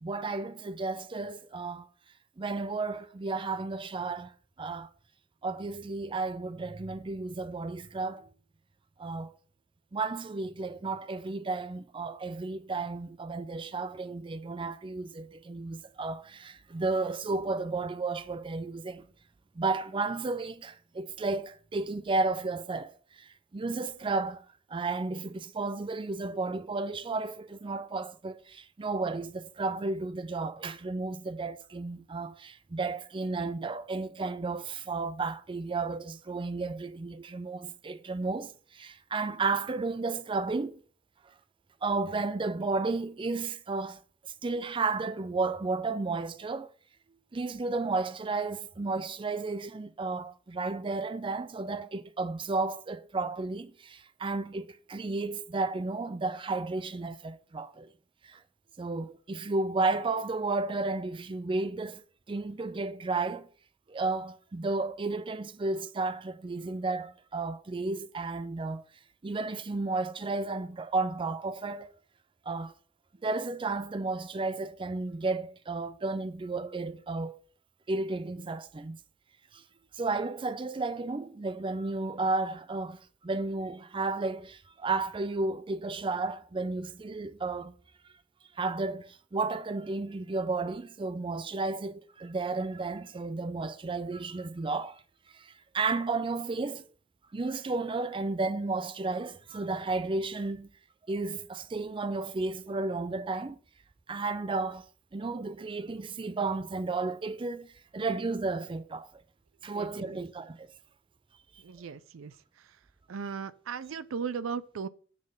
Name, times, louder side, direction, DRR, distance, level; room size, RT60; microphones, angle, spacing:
voice 1, 0.0-1.9 2.4-4.3 4.6-4.9 5.4-8.3 9.0-9.3 9.9-19.1 19.6-40.8 41.8-44.0 44.4-46.7 47.3-57.9 58.3-58.4 58.8-62.0 62.3-63.5 63.9-68.8 69.2-71.9 72.5-72.7 73.2-77.4 77.9-79.0 79.5-79.6 79.9-87.8 88.6-95.0 95.3-96.8 97.3-100.7 101.1-103.6 104.1-104.8 105.1-107.7 107.9-109.1 109.6-110.7, right 3 dB, 25° right, 0.4 m, -33 dB
voice 2, 109.7-110.2 111.6-112.7 113.1-114.9, right 6 dB, 90° right, 0.4 m, -37 dB
7.4 x 4.0 x 6.4 m
head